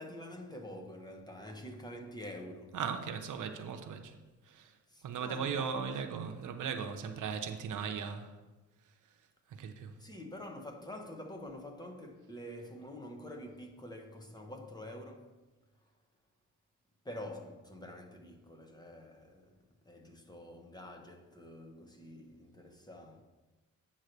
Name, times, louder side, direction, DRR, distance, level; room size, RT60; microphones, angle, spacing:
voice 1, 0.0-2.8 4.9-5.8 10.0-15.4 17.0-23.2, left 1 dB, 15° left, 1.0 m, -47 dB
voice 2, 2.7-4.1 4.5-4.7 5.0-8.3 9.6-9.9, right 6 dB, 75° right, 0.8 m, -37 dB
9.1 x 3.2 x 6.5 m
cardioid pair, 95°, 31 cm